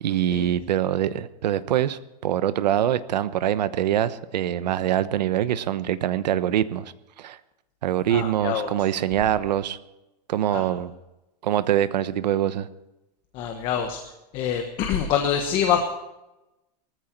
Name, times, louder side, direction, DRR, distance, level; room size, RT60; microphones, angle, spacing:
voice 1, 0.0-7.4 7.8-9.8 10.3-10.9 11.4-12.7, right 11 dB, 80° right, 13 dB, 1.1 m, -24 dB
voice 2, 8.1-8.7 10.5-10.6 13.3-14.0 14.3-15.8, left 8 dB, 25° left, 4 dB, 1.3 m, -25 dB
19.5 x 14.5 x 4.5 m, 0.96 s
supercardioid pair, 180°, 21 cm